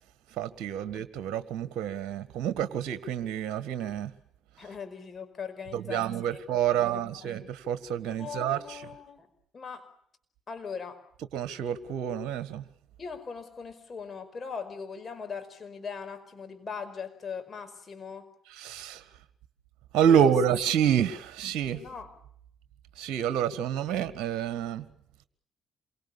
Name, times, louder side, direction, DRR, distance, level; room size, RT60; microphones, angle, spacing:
voice 1, 0.3-4.1 5.7-8.8 11.3-12.6 18.5-19.0 19.9-21.8 23.0-24.9, right 9 dB, 60° right, 14 dB, 1.6 m, -28 dB
voice 2, 4.6-7.2 8.2-9.3 9.5-9.9 10.5-11.0 13.0-18.3 20.1-20.3 21.7-22.1, left 6 dB, 35° left, 7 dB, 5.0 m, -40 dB
27.5 x 24.0 x 7.1 m, 0.67 s
figure-of-eight pair, 45°, 0 cm